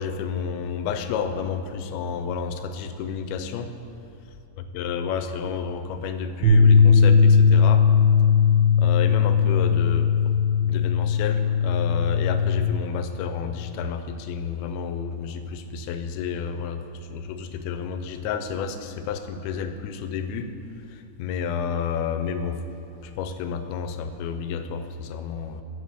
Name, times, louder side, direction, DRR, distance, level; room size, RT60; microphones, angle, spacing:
voice 1, 0.0-3.7 4.6-7.9 8.8-10.3 10.6-20.5 20.9-22.6 23.0-25.6, left 6 dB, 85° left, 8 dB, 2.4 m, -30 dB
sound 1, 6.4-12.7, left 6 dB, 80° right, 2.7 m, -18 dB
9.1 x 5.3 x 6.5 m, 2.8 s
omnidirectional pair, 4.4 m